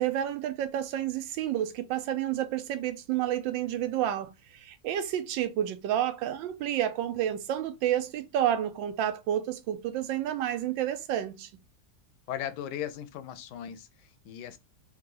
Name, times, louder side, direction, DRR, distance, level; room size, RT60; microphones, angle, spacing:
voice 1, 0.0-11.5, right 11 dB, 85° right, 1.4 m, -30 dB
voice 2, 12.3-14.6, left 10 dB, 75° left, 1.1 m, -38 dB
3.9 x 2.9 x 3.7 m
omnidirectional pair, 2.0 m